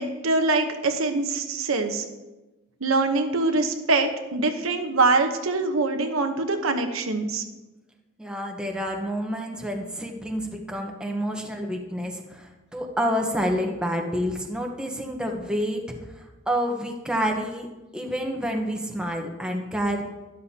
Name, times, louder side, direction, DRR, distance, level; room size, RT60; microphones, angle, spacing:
voice 1, 0.0-2.0 2.8-7.4, right 3 dB, 90° right, 6 dB, 1.1 m, -24 dB
voice 2, 8.2-15.8 16.2-17.7 17.9-20.0, equal, 5° right, 1 dB, 1.1 m, -28 dB
12.5 x 11.5 x 2.9 m, 1.1 s
head